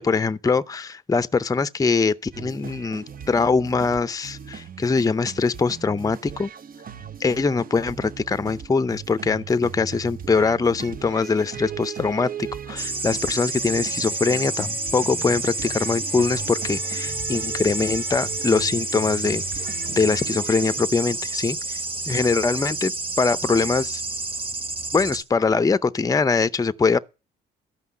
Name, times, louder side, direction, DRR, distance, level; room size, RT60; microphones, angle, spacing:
voice 1, 0.0-6.5 7.2-12.3 12.7-19.4 20.0-21.8 22.1-24.0 24.9-27.0, left 4 dB, 20° left, 0.6 m, -22 dB
sound 1, 2.3-20.8, right 8 dB, 45° right, 0.9 m, -38 dB
sound 2, 12.8-25.2, right 2 dB, 25° right, 2.4 m, -29 dB
13.5 x 5.8 x 9.6 m
cardioid pair, 90°, 20 cm